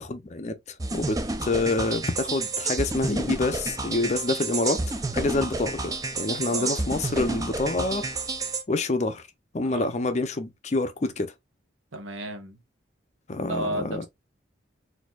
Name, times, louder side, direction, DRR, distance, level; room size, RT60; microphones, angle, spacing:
voice 1, 0.1-0.6 0.9-4.8 5.1-8.1 8.7-9.2 9.5-11.3 13.3-14.1, left 2 dB, 35° left, 0.5 m, -27 dB
sound 1, 0.8-8.6, right 3 dB, 20° right, 0.4 m, -30 dB
voice 2, 11.9-12.6 13.4-14.1, right 1 dB, 85° right, 1.0 m, -33 dB
4.2 x 2.7 x 2.3 m
head